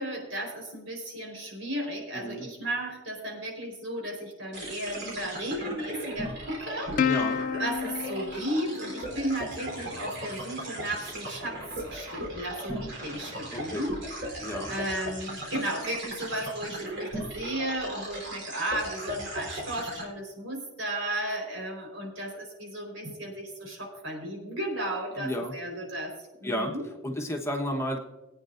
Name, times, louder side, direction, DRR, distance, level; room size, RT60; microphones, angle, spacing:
voice 1, 0.0-14.4 14.7-26.9, right 1 dB, 80° right, 1 dB, 4.4 m, -34 dB
voice 2, 2.1-2.5 7.0-7.4 13.5-13.8 14.4-14.7 25.2-25.5 26.4-26.7 27.0-28.0, equal, 15° left, 1 dB, 1.3 m, -32 dB
sound 1, 4.5-20.0, right 1 dB, 65° right, 3.8 m, -37 dB
Plucked string instrument, 7.0-9.7, left 7 dB, 45° left, 0.3 m, -30 dB
22.5 x 9.0 x 2.6 m, 1.1 s
head